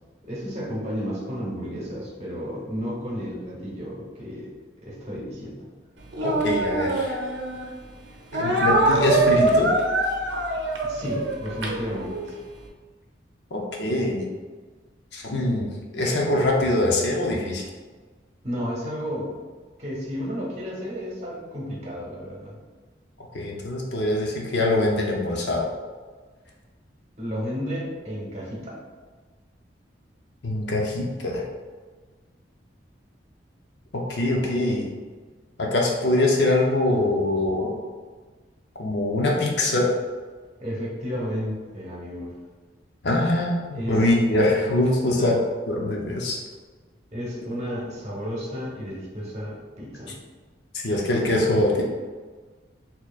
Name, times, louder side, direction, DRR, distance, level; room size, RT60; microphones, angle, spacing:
voice 1, 0.2-4.5 4.8-5.7 10.8-12.4 18.4-19.3 19.8-22.5 27.2-28.8 40.6-42.3 43.7-44.1 45.0-45.3 47.1-50.1, equal, 35° right, -5 dB, 1.1 m, -32 dB
Speech, 6.1-7.7 8.3-12.4, right 2 dB, 75° right, 0.6 m, -23 dB
voice 2, 6.2-7.2 8.3-9.7 13.5-14.3 15.1-17.6 23.3-25.7 30.4-31.4 33.9-34.9 35.6-37.7 38.8-39.9 43.0-45.4 45.7-46.4 50.7-51.8, left 1 dB, 65° left, -1 dB, 0.6 m, -23 dB
4.4 x 2.9 x 2.4 m, 1.4 s
head